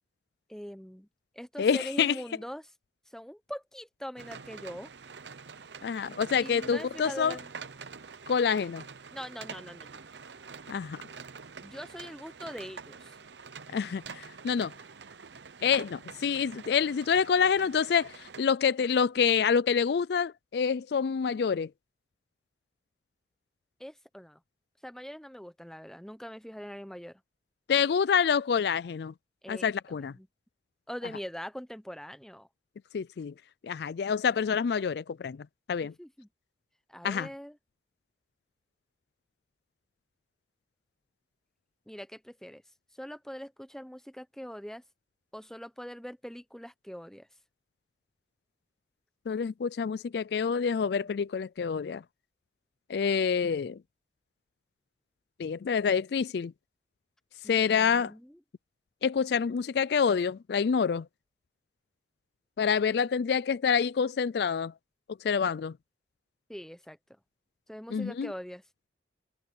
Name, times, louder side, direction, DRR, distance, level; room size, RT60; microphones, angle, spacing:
voice 1, 0.5-1.1 1.3-2.7 3.1-4.9 6.4-7.5 9.1-10.0 11.6-13.2 23.8-24.4 24.8-27.2 29.4-30.3 30.9-32.5 35.8-36.3 36.9-37.6 41.9-42.6 43.0-44.8 45.3-47.3 57.4-58.4 66.5-67.0 67.7-68.6, equal, 5° left, 0.8 m, -42 dB
voice 2, 1.6-2.2 5.8-7.4 8.3-8.8 10.7-11.0 13.7-14.7 15.6-21.7 27.7-29.1 29.5-30.1 32.9-33.3 33.6-35.9 37.0-37.3 49.3-52.0 52.9-53.8 55.4-56.5 57.5-58.1 59.0-61.1 62.6-64.7 65.2-65.8 67.9-68.3, left 6 dB, 60° left, 0.4 m, -27 dB
sound 1, 4.2-18.4, right 5 dB, 75° right, 0.9 m, -46 dB
head